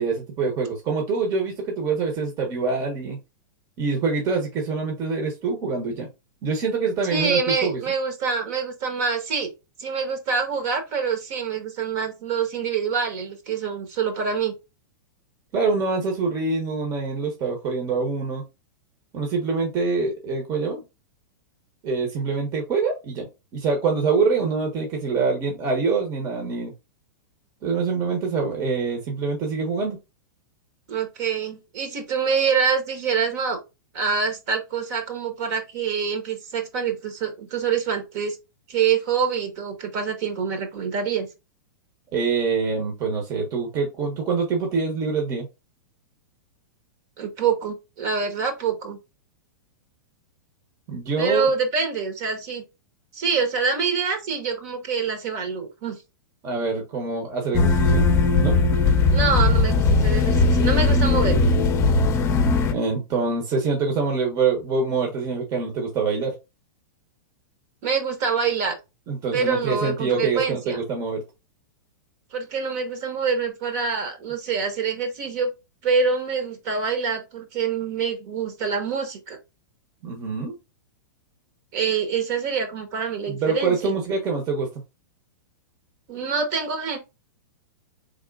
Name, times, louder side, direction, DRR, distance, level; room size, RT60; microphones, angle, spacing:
voice 1, 0.0-3.2 3.8-6.1 6.4-7.8 15.5-18.4 19.1-20.8 21.8-23.3 23.5-26.7 27.6-30.0 42.1-45.5 50.9-51.5 56.4-58.1 58.4-58.6 62.7-66.3 69.1-71.2 80.0-80.5 83.3-84.7, right 4 dB, 30° right, 1.2 m, -25 dB
voice 2, 7.1-9.5 9.8-14.5 30.9-33.6 33.9-38.4 38.7-41.3 47.2-49.0 51.2-52.6 53.1-56.0 59.1-61.5 67.8-68.8 69.3-70.8 72.3-75.5 75.8-79.4 81.7-83.9 86.1-87.0, right 5 dB, 50° right, 1.5 m, -25 dB
sound 1, 57.5-62.7, left 3 dB, 25° left, 0.7 m, -19 dB
4.3 x 3.6 x 2.5 m
hypercardioid pair, 135°, 11 cm